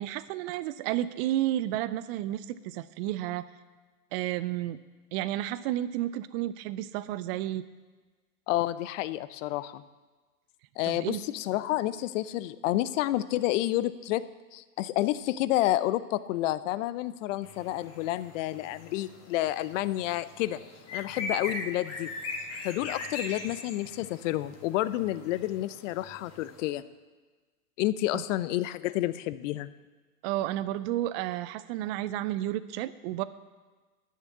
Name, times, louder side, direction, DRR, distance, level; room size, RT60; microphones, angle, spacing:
voice 1, 0.0-3.5 4.1-4.8 5.1-7.6 10.8-11.2 28.1-28.2 30.2-33.2, right 14 dB, 45° right, 14 dB, 0.5 m, -31 dB
voice 2, 8.5-9.8 10.8-14.2 14.5-20.6 20.9-22.1 22.6-26.8 27.8-29.7, left 15 dB, 55° left, 15 dB, 0.6 m, -29 dB
sound 1, 17.4-26.7, left 2 dB, 35° left, 1.9 m, -41 dB
9.5 x 7.0 x 8.4 m, 1.3 s
hypercardioid pair, 105°, 46 cm